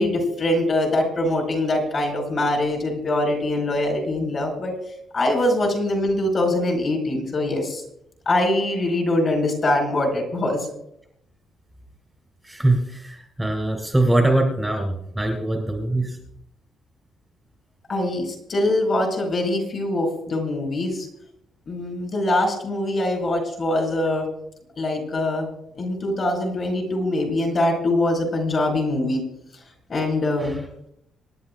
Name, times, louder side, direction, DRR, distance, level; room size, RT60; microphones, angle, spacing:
voice 1, 0.0-4.7 5.1-7.8 8.3-10.7 17.9-21.1 21.7-24.3 24.8-25.5 25.8-29.2 29.9-30.6, left 1 dB, 35° left, 1 dB, 4.2 m, -23 dB
voice 2, 12.4-16.2 30.4-30.6, right 1 dB, 5° right, 2 dB, 2.4 m, -22 dB
26.5 x 11.0 x 2.2 m, 0.74 s
cardioid pair, 165°, 0 cm